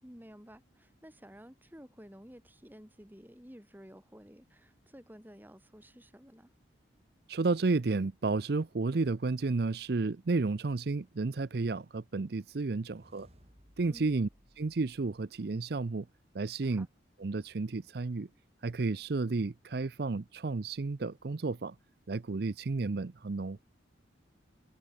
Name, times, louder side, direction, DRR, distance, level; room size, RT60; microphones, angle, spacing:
voice 1, 0.0-6.5 13.9-14.1 16.6-16.9, equal, 10° right, 5.2 m, -53 dB
voice 2, 7.3-13.3 13.8-14.3 14.6-16.1 16.3-16.9 17.2-18.3 18.6-21.8 22.1-23.6, right 3 dB, 55° right, 0.6 m, -32 dB
sound 1, 12.5-15.8, equal, 35° right, 7.8 m, -63 dB
head